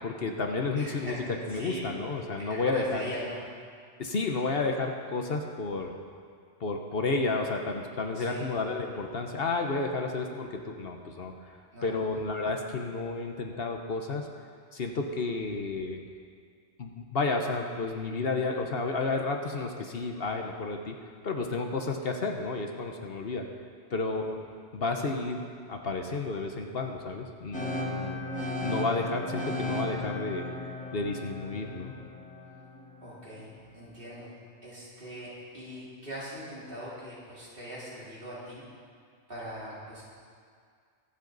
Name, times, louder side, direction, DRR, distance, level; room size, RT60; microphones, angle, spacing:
voice 1, 0.0-1.2 1.4-3.1 4.0-5.9 6.6-11.3 11.8-14.3 14.7-16.0 16.8-21.0 21.2-23.5 23.9-24.3 24.7-28.2 28.6-30.5 30.9-31.9, left 3 dB, 60° left, 3 dB, 1.1 m, -31 dB
voice 2, 0.8-1.9 2.5-3.4 8.1-8.6 11.7-12.1 15.5-15.6 24.2-24.3 33.0-34.3 34.6-38.6 39.3-40.0, right 1 dB, 50° right, -8 dB, 3.8 m, -41 dB
sound 1, 27.5-33.5, left 2 dB, 5° left, 1.2 m, -36 dB
23.5 x 8.1 x 4.0 m, 2.1 s
omnidirectional pair, 1.2 m